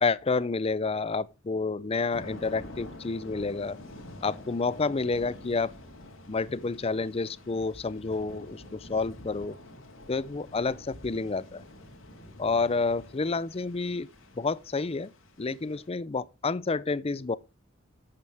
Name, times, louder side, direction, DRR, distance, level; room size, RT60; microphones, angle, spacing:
voice 1, 0.0-3.8 4.2-5.7 6.3-9.6 10.1-11.6 12.4-14.1 14.4-15.1 15.4-17.4, left 4 dB, 30° left, 0.5 m, -29 dB
Thunder / Rain, 2.1-15.9, left 1 dB, 85° left, 3.0 m, -47 dB
12.5 x 8.8 x 3.4 m
head